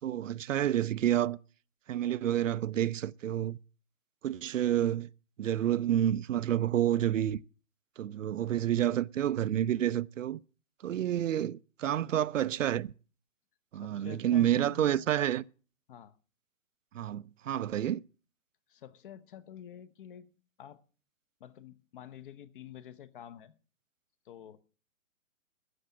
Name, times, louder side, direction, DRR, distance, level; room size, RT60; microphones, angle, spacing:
voice 1, 0.0-1.4 1.9-3.6 4.2-5.1 5.4-7.4 8.0-10.4 10.8-12.9 13.7-15.4 16.9-18.0, right 11 dB, 65° right, 0.5 m, -29 dB
voice 2, 13.7-15.1 15.9-16.2 18.7-20.3 20.6-20.8 21.4-23.5 24.2-24.6, left 10 dB, 40° left, 0.9 m, -48 dB
13.0 x 7.1 x 7.5 m
hypercardioid pair, 135°, 41 cm